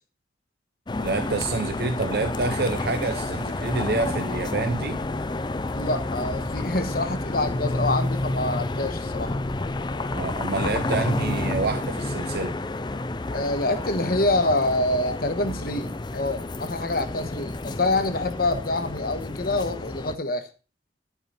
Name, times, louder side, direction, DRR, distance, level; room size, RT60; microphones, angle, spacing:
sound 1, 0.9-20.2, left 2 dB, 25° left, 0.5 m, -30 dB
voice 1, 1.0-5.0 10.1-12.6, right 3 dB, 60° right, 0.6 m, -27 dB
voice 2, 5.7-9.4 13.3-20.5, left 2 dB, 55° left, 1.3 m, -26 dB
11.0 x 8.2 x 4.2 m
head